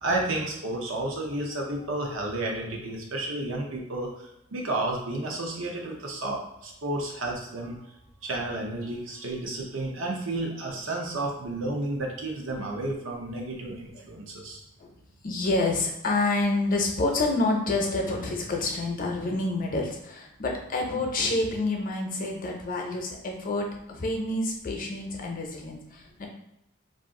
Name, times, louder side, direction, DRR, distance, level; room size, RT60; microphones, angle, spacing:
voice 1, 0.0-7.8 8.2-14.6, right 2 dB, 85° right, 0 dB, 0.8 m, -31 dB
voice 2, 15.2-26.3, left 2 dB, 45° left, 1 dB, 0.6 m, -28 dB
2.5 x 2.5 x 3.6 m, 0.83 s
head